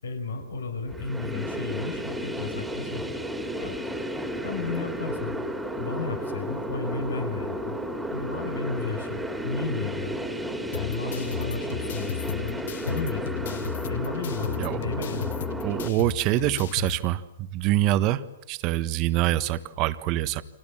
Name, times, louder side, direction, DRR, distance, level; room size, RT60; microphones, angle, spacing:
voice 1, 0.0-3.2 3.6-3.8 4.4-5.4 5.8-7.8 8.1-10.2 10.7-15.3, left 4 dB, 80° left, 7 dB, 5.2 m, -33 dB
sound 1, 0.9-15.9, equal, 5° right, 2.8 m, -33 dB
sound 2, 10.7-17.0, left 9 dB, 60° left, 1.3 m, -35 dB
voice 2, 15.6-17.2 17.5-20.4, right 14 dB, 35° right, 12 dB, 1.4 m, -25 dB
30.0 x 24.5 x 7.5 m, 0.93 s
hypercardioid pair, 135°, 0 cm